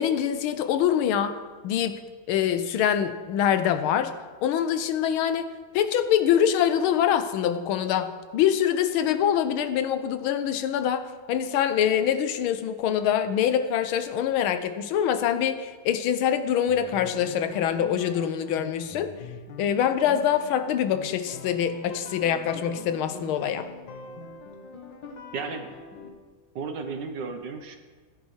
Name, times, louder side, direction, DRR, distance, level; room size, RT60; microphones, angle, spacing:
voice 1, 0.0-1.3 1.6-2.0 2.3-4.1 4.4-19.1 19.6-23.7, left 9 dB, 90° left, 10 dB, 1.5 m, -24 dB
sound 1, 16.7-26.1, left 4 dB, 65° left, 1.8 m, -43 dB
voice 2, 25.3-25.7 26.5-27.8, right 4 dB, 65° right, 6 dB, 1.5 m, -33 dB
15.0 x 10.5 x 3.2 m, 1.4 s
omnidirectional pair, 2.2 m